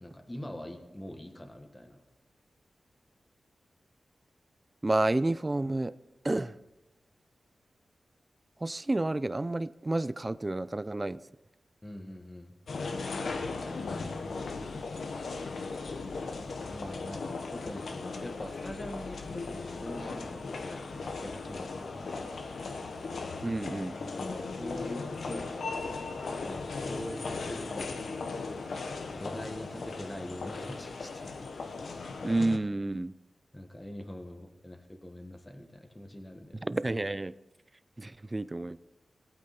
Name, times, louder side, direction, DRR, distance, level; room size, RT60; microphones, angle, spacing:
voice 1, 0.0-2.0 11.8-12.5 16.7-22.3 23.9-25.4 26.4-28.0 29.1-31.3 33.5-36.7, left 1 dB, 15° left, 4 dB, 1.6 m, -43 dB
voice 2, 4.8-5.9 6.2-6.6 8.6-11.2 23.4-23.9 32.2-33.1 36.6-37.3 38.0-38.8, right 2 dB, 25° right, 16 dB, 0.4 m, -30 dB
sound 1, 12.7-32.6, left 4 dB, 75° left, 1.2 m, -37 dB
19.5 x 8.6 x 4.3 m, 0.98 s
wide cardioid pair, 90°, 0 cm